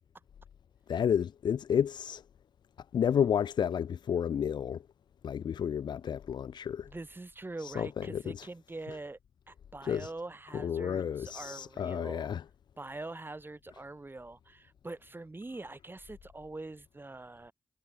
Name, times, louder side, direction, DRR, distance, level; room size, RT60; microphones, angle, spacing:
voice 1, 0.9-2.2 2.9-4.8 5.2-6.9 7.6-8.5 9.8-10.1 10.5-12.4, left 8 dB, 85° left, 1.9 m, -31 dB
voice 2, 6.9-9.2 9.5-12.3 12.8-17.5, right 2 dB, 30° right, 6.5 m, -44 dB
cardioid pair, 55°, 7 cm